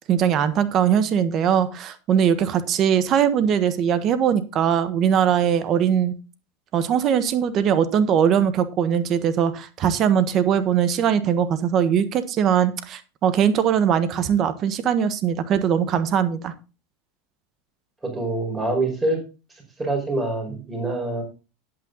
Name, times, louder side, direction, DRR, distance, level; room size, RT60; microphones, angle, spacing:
voice 1, 0.1-6.1 6.7-16.5, right 8 dB, 40° right, 13 dB, 1.4 m, -21 dB
voice 2, 18.0-19.2 19.8-21.2, right 2 dB, 15° right, 1 dB, 5.0 m, -25 dB
10.5 x 8.9 x 4.0 m, 0.32 s
supercardioid pair, 110°, 0 cm